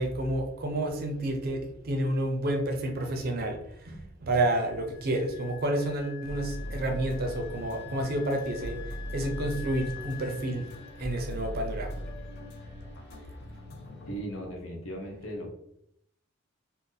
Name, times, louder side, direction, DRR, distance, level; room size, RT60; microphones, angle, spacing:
voice 1, 0.0-3.6 3.9-8.8 9.1-10.6 11.0-11.9, right 1 dB, 45° right, 3 dB, 0.5 m, -30 dB
Wind instrument woodwind instrument, 4.5-12.8, left 13 dB, 10° left, 0.9 m, -48 dB
sound 1, 6.3-14.2, equal, 50° left, 0.5 m, -40 dB
voice 2, 14.1-15.5, right 1 dB, 80° left, 0 dB, 0.8 m, -37 dB
2.5 x 2.0 x 3.8 m, 0.73 s
head